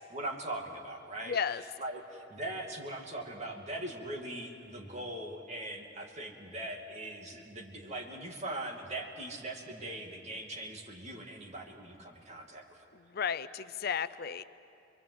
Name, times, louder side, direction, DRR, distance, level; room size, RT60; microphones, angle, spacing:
voice 1, 0.1-12.9, right 1 dB, 35° right, 0 dB, 2.5 m, -41 dB
voice 2, 1.3-1.6 13.1-14.4, left 7 dB, 55° left, 14 dB, 0.5 m, -33 dB
26.5 x 22.5 x 7.9 m, 2.6 s
head